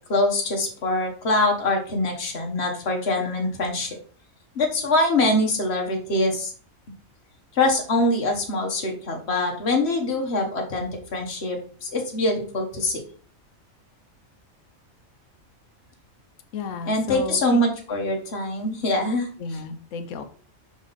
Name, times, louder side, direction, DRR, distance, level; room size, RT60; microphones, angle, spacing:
voice 1, 0.1-3.9 4.5-6.5 7.5-13.0 16.8-19.6, left 2 dB, 50° left, 2 dB, 1.5 m, -24 dB
voice 2, 16.5-17.6 19.4-20.2, left 5 dB, 70° left, 7 dB, 1.0 m, -33 dB
5.2 x 5.1 x 4.0 m, 0.42 s
omnidirectional pair, 1.4 m